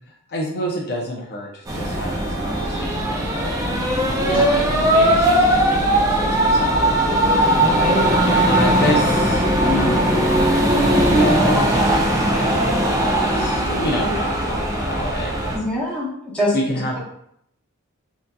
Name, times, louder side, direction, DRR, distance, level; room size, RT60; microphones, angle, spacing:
voice 1, 0.3-7.4 8.2-15.6 16.5-17.0, left 1 dB, 50° left, -2 dB, 0.5 m, -29 dB
sound 1, 1.7-15.6, right 1 dB, 15° right, 0.4 m, -19 dB
voice 2, 4.1-4.4 7.5-8.2 15.5-16.6, equal, 5° left, -7 dB, 0.9 m, -25 dB
3.6 x 2.6 x 2.2 m, 0.71 s
head